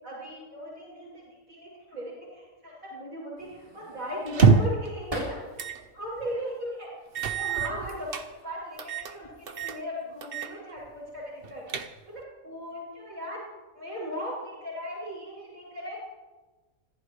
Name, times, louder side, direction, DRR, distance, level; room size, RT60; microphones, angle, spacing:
voice 1, 0.0-5.4 5.9-6.9 7.3-11.6 12.1-13.4 13.7-16.0, equal, 70° right, -8 dB, 7.3 m, -37 dB
sound 1, 3.4-5.8 6.3-7.1 8.1-8.4 8.7-9.5, equal, 25° right, 3.0 m, -42 dB
sound 2, 4.3-4.9 5.6-5.8 6.2-6.3 7.2-8.3 8.8-9.1 9.5-9.8 10.2-10.5 10.8-10.9 11.4-12.2, right 5 dB, 45° right, 1.1 m, -25 dB
26.0 x 14.5 x 3.2 m, 1.2 s
omnidirectional pair, 1.5 m